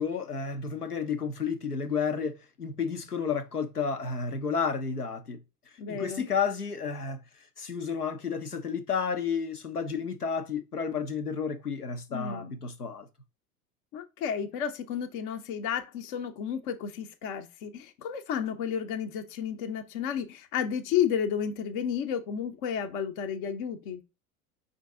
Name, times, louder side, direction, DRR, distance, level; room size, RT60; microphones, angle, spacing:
voice 1, 0.0-5.4 5.9-13.1, left 6 dB, 90° left, 0.7 m, -31 dB
voice 2, 5.8-6.2 12.1-12.5 13.9-24.0, left 8 dB, 40° left, 0.6 m, -32 dB
5.1 x 2.6 x 3.6 m
figure-of-eight pair, 85°, 44 cm